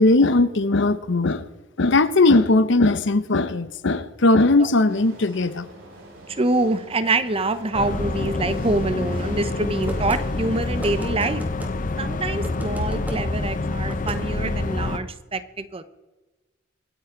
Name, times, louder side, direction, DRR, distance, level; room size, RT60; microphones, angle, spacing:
voice 1, 0.0-1.5 1.8-5.6, left 2 dB, 70° left, 0.9 m, -18 dB
sound 1, 4.9-11.0, right 1 dB, 90° right, 6.3 m, -44 dB
voice 2, 6.3-11.4 12.0-15.8, right 2 dB, 30° right, 0.9 m, -25 dB
sound 2, 7.7-15.0, left 2 dB, 45° left, 0.9 m, -27 dB
sound 3, 9.9-10.2 10.8-11.7 12.4-13.2 13.9-14.2, equal, 10° right, 2.3 m, -36 dB
26.0 x 9.0 x 3.9 m
head